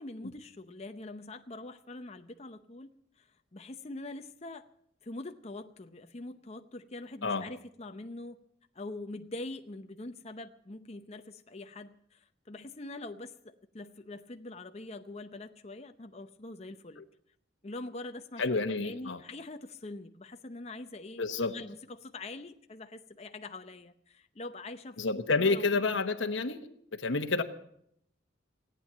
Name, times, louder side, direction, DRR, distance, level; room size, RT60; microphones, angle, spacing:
voice 1, 0.0-4.7 5.0-8.4 8.7-17.0 17.6-26.0, left 2 dB, 35° left, 7 dB, 0.7 m, -44 dB
voice 2, 18.4-19.2 21.2-21.6 25.0-27.4, left 3 dB, 80° left, 6 dB, 1.1 m, -29 dB
17.5 x 9.1 x 8.5 m, 0.71 s
head